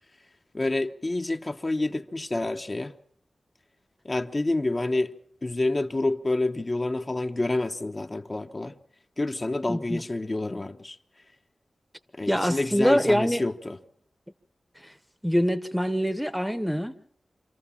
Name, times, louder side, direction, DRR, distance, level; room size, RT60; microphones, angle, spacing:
voice 1, 0.5-2.9 4.0-5.1 5.4-8.7 9.2-11.0 12.1-13.8, left 2 dB, 35° left, 1.0 m, -28 dB
voice 2, 9.7-10.0 12.3-13.4 14.8-14.9 15.2-16.9, equal, ahead, 1.0 m, -24 dB
26.0 x 14.0 x 7.3 m
cardioid pair, 55°, 0 cm